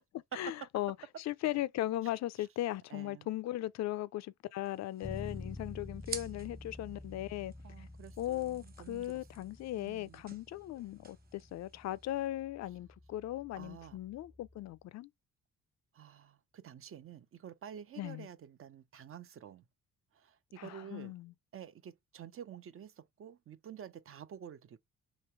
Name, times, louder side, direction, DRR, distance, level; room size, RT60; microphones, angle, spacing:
voice 1, 0.3-1.0 1.3-7.9 8.2-15.1 18.0-18.3 20.6-21.3, left 14 dB, 60° left, 0.5 m, -38 dB
voice 2, 2.9-3.3 7.6-9.5 9.8-10.2 13.5-14.0 15.9-19.7 20.1-21.1 21.5-24.8, right 9 dB, 45° right, 0.6 m, -50 dB
sound 1, 4.6-12.3, right 4 dB, 30° right, 1.3 m, -51 dB
Bass guitar, 5.0-14.8, left 2 dB, 5° left, 0.5 m, -50 dB
3.2 x 2.9 x 4.4 m
cardioid pair, 90°, 30 cm